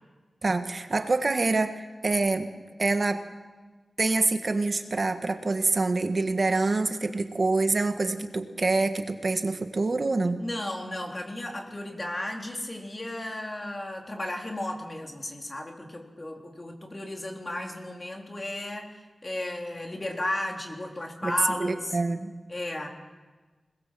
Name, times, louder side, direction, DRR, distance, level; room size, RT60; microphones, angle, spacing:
voice 1, 0.4-2.5 2.8-3.3 4.0-10.4 21.2-21.3 21.6-22.4, right 3 dB, 50° right, 7 dB, 1.6 m, -26 dB
voice 2, 10.4-22.0 22.5-22.9, left 1 dB, 35° left, 1 dB, 3.9 m, -34 dB
25.0 x 21.5 x 7.6 m, 1.3 s
wide cardioid pair, 70°, 0 cm